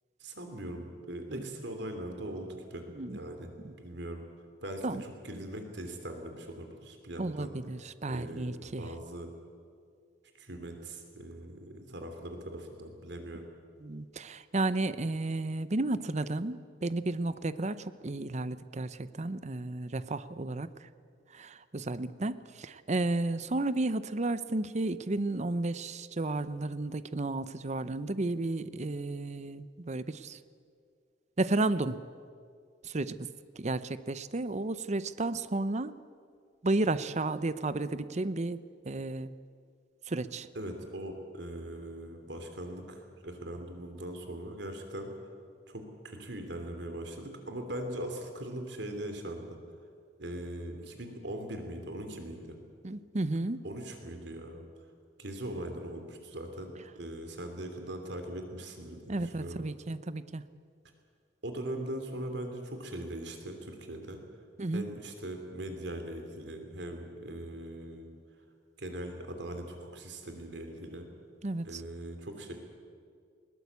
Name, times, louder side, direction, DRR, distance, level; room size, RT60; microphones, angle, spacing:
voice 1, 0.2-2.9 3.1-3.5 3.8-4.2 4.6-7.5 8.1-8.5 8.8-9.3 10.4-13.4 40.5-45.1 45.7-49.6 50.2-52.5 53.6-54.6 55.2-59.6 61.4-64.2 64.7-68.2 68.8-71.1 71.6-72.5, right 1 dB, 65° right, 5 dB, 3.2 m, -40 dB
voice 2, 7.2-8.9 13.8-20.9 21.3-30.4 31.4-32.0 32.8-33.3 33.6-35.9 36.6-39.3 40.1-40.5 52.8-53.6 59.1-60.4 64.6-64.9 71.4-71.8, right 2 dB, 40° right, 14 dB, 0.7 m, -33 dB
20.5 x 19.0 x 8.3 m, 2.2 s
head